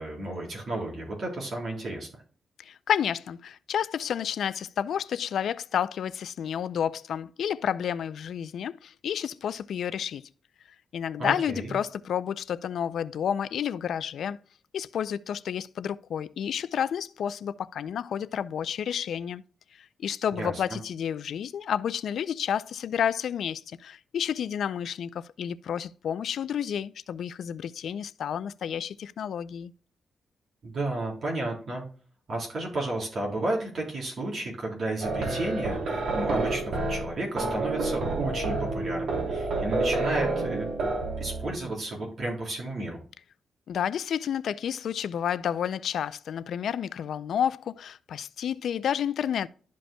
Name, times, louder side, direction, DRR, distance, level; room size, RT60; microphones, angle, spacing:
voice 1, 0.0-2.1 11.2-11.7 20.3-20.8 30.6-31.8 32.3-40.9 41.2-43.0, right 2 dB, 50° right, 3.6 m, -32 dB
voice 2, 2.6-10.2 10.9-14.4 14.7-19.4 20.0-29.7 43.7-49.5, left 8 dB, 75° left, 0.3 m, -30 dB
sound 1, 35.0-41.6, right 3 dB, 80° right, 2.7 m, -29 dB
12.5 x 5.2 x 2.2 m
wide cardioid pair, 125°, 0 cm